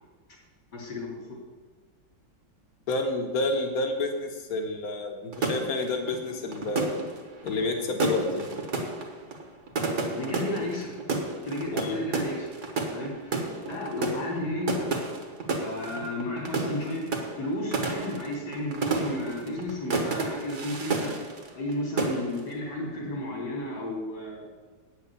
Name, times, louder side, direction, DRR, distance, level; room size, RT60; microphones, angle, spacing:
voice 1, 0.7-1.2 10.1-10.9 11.4-12.5 12.9-14.9 15.5-17.0 17.3-21.1 21.5-24.6, left 1 dB, 70° left, -3 dB, 3.4 m, -33 dB
voice 2, 2.9-7.0 7.4-8.6 11.7-12.0, left 2 dB, 55° left, 4 dB, 1.7 m, -29 dB
sound 1, 5.3-21.7 22.0-22.5, right 3 dB, 45° right, 1.7 m, -31 dB
9.0 x 7.0 x 8.3 m, 1.4 s
omnidirectional pair, 2.0 m